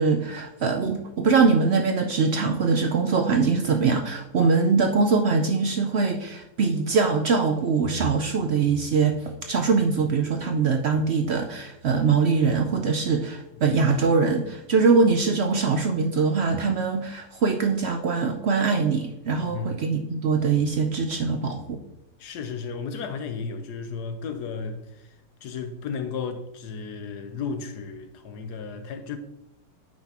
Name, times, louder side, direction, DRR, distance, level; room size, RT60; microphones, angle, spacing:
voice 1, 0.0-21.8, right 4 dB, 75° right, 0.6 m, -22 dB
voice 2, 19.4-19.8 22.2-25.2 25.4-29.2, left 5 dB, 75° left, 1.3 m, -34 dB
8.9 x 5.9 x 2.9 m
omnidirectional pair, 1.8 m